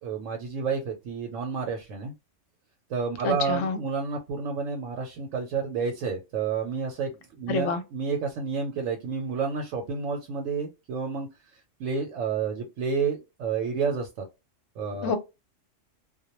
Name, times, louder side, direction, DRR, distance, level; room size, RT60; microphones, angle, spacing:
voice 1, 0.0-2.1 2.9-11.3 11.8-14.2 14.8-15.2, right 5 dB, 90° right, 1.0 m, -30 dB
voice 2, 3.2-3.8 7.5-7.8 15.0-15.2, left 5 dB, 90° left, 1.0 m, -27 dB
2.2 x 2.1 x 2.9 m
omnidirectional pair, 1.3 m